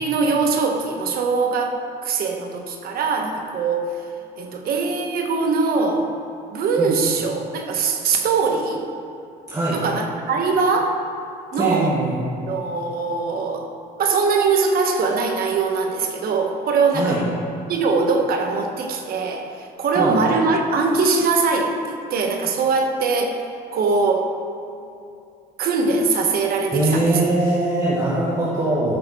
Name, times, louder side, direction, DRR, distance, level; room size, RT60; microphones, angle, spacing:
voice 1, 0.0-1.7 2.0-3.9 4.4-6.1 6.5-8.8 9.7-11.0 11.5-11.9 12.5-13.7 14.0-17.2 17.7-23.4 23.7-24.3 25.6-27.2, right 4 dB, 65° right, 3 dB, 1.3 m, -21 dB
voice 2, 9.5-9.8 11.6-12.2 16.9-17.2 19.9-20.2 26.7-29.0, right 2 dB, 20° right, -8 dB, 1.8 m, -21 dB
13.5 x 5.8 x 4.4 m, 2.6 s
cardioid pair, 110°, 17 cm